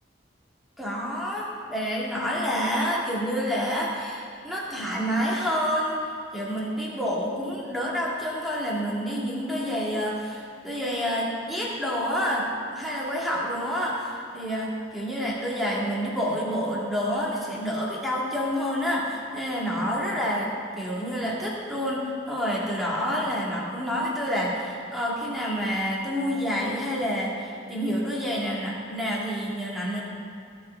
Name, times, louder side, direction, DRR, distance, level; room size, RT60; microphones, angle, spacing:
voice 1, 0.8-6.0 6.3-12.5 12.7-20.5 20.8-30.0, equal, ahead, -5 dB, 1.8 m, -28 dB
16.5 x 6.7 x 4.4 m, 2.4 s
head